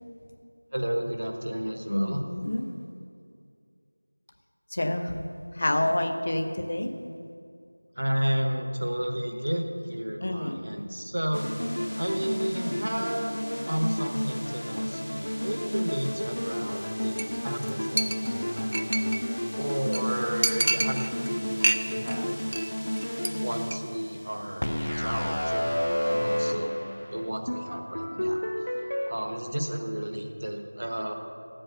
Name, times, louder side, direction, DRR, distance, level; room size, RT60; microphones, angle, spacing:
voice 1, 0.7-2.2 8.0-11.5 12.0-19.0 19.5-21.1 21.3-22.4 23.3-26.8 27.1-28.4 29.1-31.1, equal, 55° right, 4 dB, 1.2 m, -32 dB
voice 2, 1.9-2.7 4.7-5.2 5.5-6.9 10.2-10.8, left 1 dB, 35° left, 6 dB, 0.7 m, -28 dB
sound 1, 11.3-29.1, equal, 80° left, 0.7 m, -31 dB
Chink clink, 17.2-17.4 17.6-17.7 18.0-19.3 19.6-19.7 19.9-20.0 20.4-21.3 21.6-22.1 22.4-22.7 23.0-23.3 23.6-23.8, right 2 dB, 30° right, 0.4 m, -28 dB
12.5 x 7.8 x 6.7 m, 2.4 s
figure-of-eight pair, 175°, 0 cm